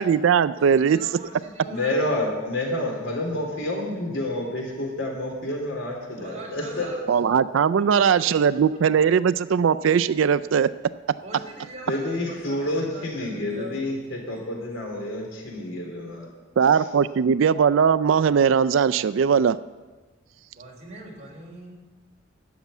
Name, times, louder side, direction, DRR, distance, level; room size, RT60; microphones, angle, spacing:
voice 1, 0.0-1.0 7.1-10.7 16.6-19.6, right 7 dB, 70° right, 16 dB, 0.4 m, -19 dB
voice 2, 0.6-2.0 6.2-7.0 7.9-8.3 11.2-13.7 20.5-21.8, right 2 dB, 40° right, -1 dB, 3.4 m, -42 dB
voice 3, 1.7-6.9 11.9-16.3, left 1 dB, 80° left, 0 dB, 3.9 m, -29 dB
13.0 x 7.2 x 9.3 m, 1.3 s
head